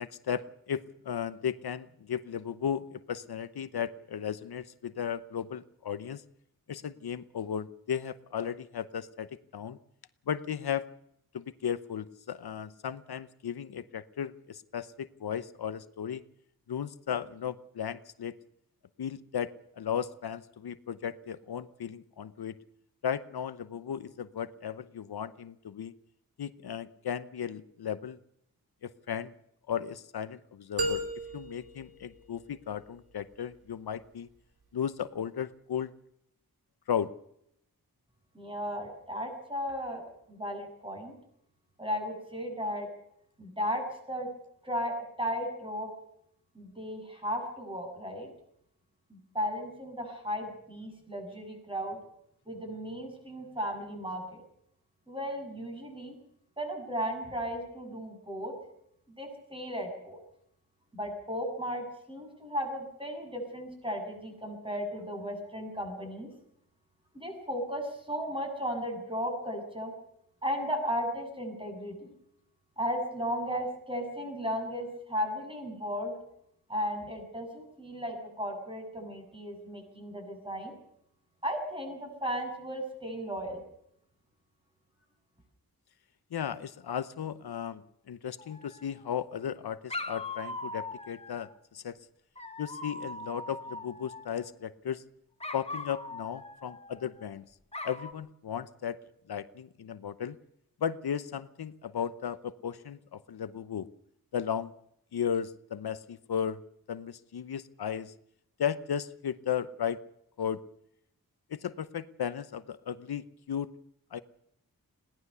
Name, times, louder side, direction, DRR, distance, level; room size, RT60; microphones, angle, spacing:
voice 1, 0.0-6.2 6.7-9.3 9.5-9.8 10.3-10.9 11.3-16.2 16.7-18.3 19.0-22.6 23.0-25.9 26.4-28.2 28.8-29.3 29.7-31.0 31.3-34.3 34.7-35.9 36.9-37.1 86.3-87.8 88.1-92.0 92.6-95.0 95.5-97.4 97.8-99.0 99.3-100.4 100.8-103.9 104.3-104.7 105.1-106.6 106.9-108.1 108.6-110.0 110.4-110.6 111.5-113.7 114.1-114.2, left 8 dB, 85° left, 13 dB, 0.9 m, -35 dB
sound 1, 30.8-32.8, right 1 dB, 80° right, 3.5 m, -35 dB
voice 2, 38.3-40.0 40.3-41.1 41.8-42.9 43.4-44.3 44.6-45.9 46.5-48.3 49.1-52.0 52.5-54.4 55.1-56.2 56.6-58.5 59.2-60.2 60.9-66.3 67.1-69.9 70.4-72.1 72.8-76.1 76.7-80.7 81.4-83.6, equal, 15° right, 2 dB, 7.7 m, -35 dB
Dog, 88.4-89.2 89.9-91.6 92.4-94.5 95.4-97.3 97.7-98.1, left 2 dB, 15° left, 1.7 m, -41 dB
21.5 x 17.5 x 6.9 m, 0.74 s
wide cardioid pair, 100°, 37 cm